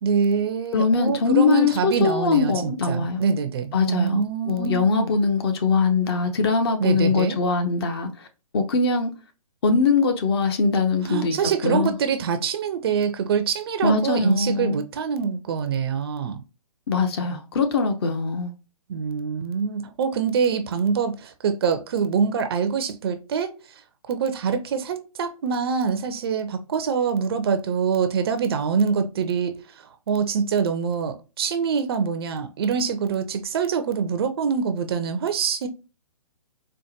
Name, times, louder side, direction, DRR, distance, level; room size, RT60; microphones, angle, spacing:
voice 1, 0.0-5.2 6.8-7.4 11.0-16.4 18.9-23.5 24.1-35.7, right 6 dB, 40° right, 0.5 m, -25 dB
voice 2, 0.7-3.2 3.7-4.2 4.5-8.3 8.5-9.1 9.6-11.9 13.8-14.8 16.9-18.5, left 4 dB, 45° left, 0.7 m, -22 dB
4.5 x 2.1 x 2.7 m
figure-of-eight pair, 130°, 19 cm